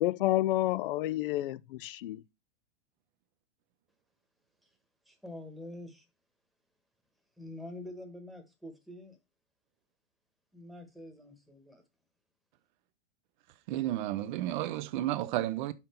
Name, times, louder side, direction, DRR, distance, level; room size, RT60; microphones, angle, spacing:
voice 1, 0.0-2.2, left 15 dB, 55° left, 0.5 m, -29 dB
voice 2, 5.1-6.0 7.4-9.2 10.5-11.8, left 1 dB, ahead, 1.2 m, -46 dB
voice 3, 13.7-15.7, right 14 dB, 45° right, 0.8 m, -32 dB
6.8 x 5.8 x 4.3 m
hypercardioid pair, 150°, 33 cm